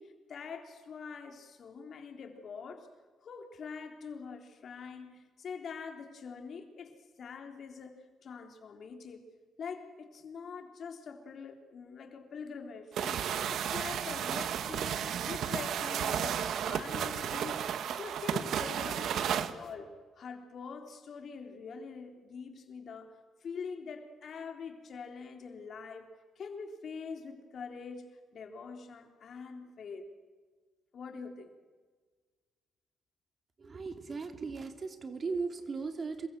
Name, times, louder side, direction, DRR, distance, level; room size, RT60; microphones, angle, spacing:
voice 1, 0.0-2.9 3.2-9.2 9.6-13.2 13.5-15.0 15.3-17.6 17.9-30.1 30.9-31.5, left 5 dB, 55° left, 5 dB, 3.6 m, -44 dB
sound 1, 13.0-19.5, right 9 dB, 70° right, 1.5 m, -33 dB
voice 2, 33.6-36.3, right 4 dB, 40° right, 7 dB, 3.0 m, -37 dB
27.5 x 23.0 x 7.7 m, 1.4 s
cardioid pair, 90°, 0 cm